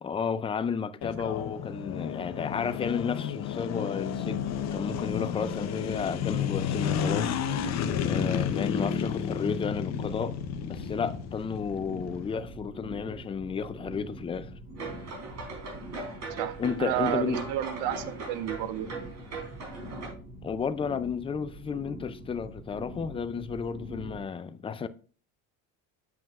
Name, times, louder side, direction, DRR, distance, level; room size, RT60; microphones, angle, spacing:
voice 1, 0.0-7.4 8.0-10.4 10.6-14.5 16.6-17.4 20.4-24.9, left 6 dB, 15° left, 0.3 m, -32 dB
sound 1, 1.0-12.3, left 8 dB, 45° left, 0.7 m, -32 dB
sound 2, 4.2-24.2, right 1 dB, 20° right, 2.2 m, -44 dB
sound 3, 14.8-20.1, right 4 dB, 45° right, 4.0 m, -39 dB
voice 2, 16.3-18.9, right 12 dB, 75° right, 0.9 m, -31 dB
7.7 x 7.4 x 2.4 m
cardioid pair, 115°, 38 cm